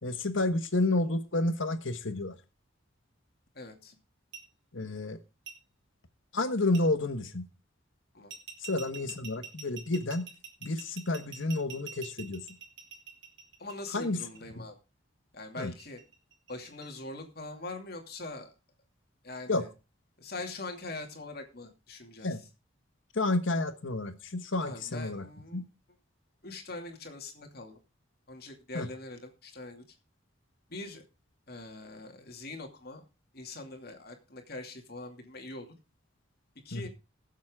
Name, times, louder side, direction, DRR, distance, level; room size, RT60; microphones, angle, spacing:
voice 1, 0.0-2.3 4.7-5.2 6.3-7.4 8.6-10.2 10.6-12.4 13.9-14.2 15.6-15.7 19.5-19.6 22.2-22.4 23.1-25.2 25.5-25.6 28.7-28.9 36.7-36.9, left 2 dB, 75° left, 9 dB, 1.4 m, -30 dB
voice 2, 3.5-4.0 8.1-8.3 13.6-14.8 15.3-16.0 16.5-18.5 19.2-19.7 20.2-22.3 24.6-25.6 26.4-27.8 28.3-29.8 30.7-31.0 31.5-33.0 33.3-35.7 36.6-36.9, left 2 dB, 50° left, 4 dB, 2.5 m, -42 dB
sound 1, 4.3-4.4 5.5-5.6 6.7-6.8 8.3-14.4 15.6-16.9, right 7 dB, 60° right, 3.5 m, -45 dB
20.0 x 7.4 x 3.7 m, 0.29 s
head